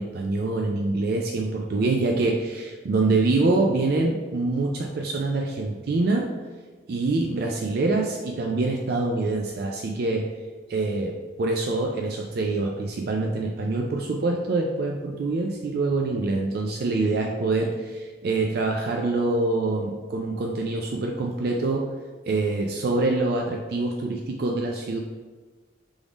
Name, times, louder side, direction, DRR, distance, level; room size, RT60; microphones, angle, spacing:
voice 1, 0.0-6.3 6.9-10.4 10.7-21.9 22.3-25.0, right 3 dB, 55° right, 1 dB, 0.4 m, -25 dB
3.6 x 3.5 x 3.9 m, 1.3 s
head